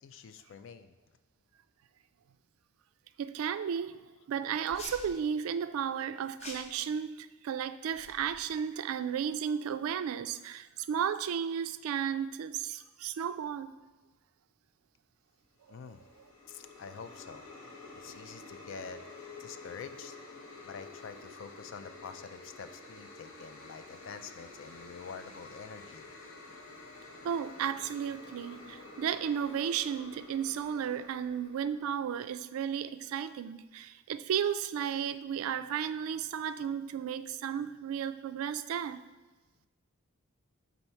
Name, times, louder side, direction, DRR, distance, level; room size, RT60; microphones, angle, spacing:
voice 1, 0.0-0.9 15.7-16.0 16.5-17.4 17.9-19.0 19.4-20.2 20.6-26.1, left 5 dB, 60° left, 10 dB, 0.3 m, -47 dB
voice 2, 3.2-13.7 15.7-15.8 27.2-39.0, right 8 dB, 80° right, 13 dB, 0.3 m, -34 dB
sound 1, 4.7-5.1 6.4-6.8 7.9-8.6, left 2 dB, 30° left, 0.8 m, -46 dB
sound 2, 15.6-32.1, left 3 dB, 80° left, 0.8 m, -50 dB
5.5 x 4.1 x 4.4 m, 1.2 s
head